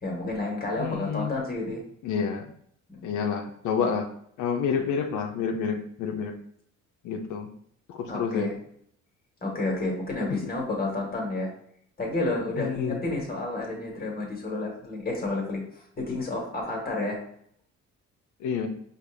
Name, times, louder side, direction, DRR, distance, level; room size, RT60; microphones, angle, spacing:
voice 1, 0.0-1.8 2.9-3.2 8.1-8.6 9.4-11.5 12.0-17.2, left 2 dB, 30° left, -1 dB, 1.5 m, -30 dB
voice 2, 0.8-1.4 2.0-2.5 3.0-4.1 4.4-6.4 7.0-7.5 7.9-8.5 10.3-10.5 12.6-13.0 18.4-18.7, left 6 dB, 75° left, 5 dB, 0.6 m, -29 dB
4.9 x 2.5 x 3.3 m, 0.66 s
cardioid pair, 90°, 30 cm